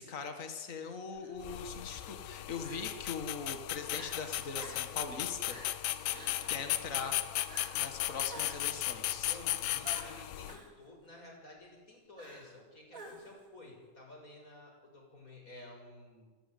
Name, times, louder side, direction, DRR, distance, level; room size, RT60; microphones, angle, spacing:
voice 1, 0.0-5.6 6.5-7.2 7.7-9.4, left 5 dB, 70° left, 6 dB, 0.7 m, -41 dB
Crying sobbing, 1.1-1.4 2.6-3.1 3.6-3.7 3.9-4.2 4.6-5.0 5.4-5.8 6.1-6.6 7.5-7.8 8.3-8.8 9.8-10.7 12.2-12.6 12.9-13.4, right 2 dB, 20° right, 3.5 m, -50 dB
sound 1, 1.4-10.6, left 14 dB, 85° left, 2.8 m, -36 dB
voice 2, 9.2-16.3, left 2 dB, 20° left, 0 dB, 6.7 m, -53 dB
29.0 x 13.0 x 9.3 m, 1.4 s
omnidirectional pair, 4.3 m